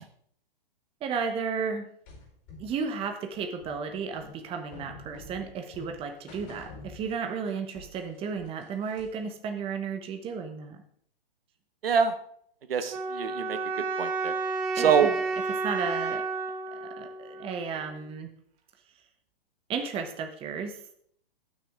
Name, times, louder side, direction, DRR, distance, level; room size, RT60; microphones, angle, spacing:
voice 1, 1.0-1.9 2.6-10.8 14.8-15.1 15.6-16.2 16.7-18.3 19.7-20.8, right 5 dB, 20° right, 5 dB, 1.1 m, -33 dB
sound 1, 2.1-7.5 7.7-9.3, left 3 dB, 25° left, 4.8 m, -48 dB
voice 2, 11.8-12.1 12.7-13.6 14.0-14.3 14.7-15.1, right 7 dB, 70° right, 9 dB, 1.3 m, -24 dB
sound 2, 12.9-17.9, right 3 dB, 40° right, 1.8 m, -31 dB
19.0 x 6.5 x 3.7 m, 0.66 s
hypercardioid pair, 135°, 30 cm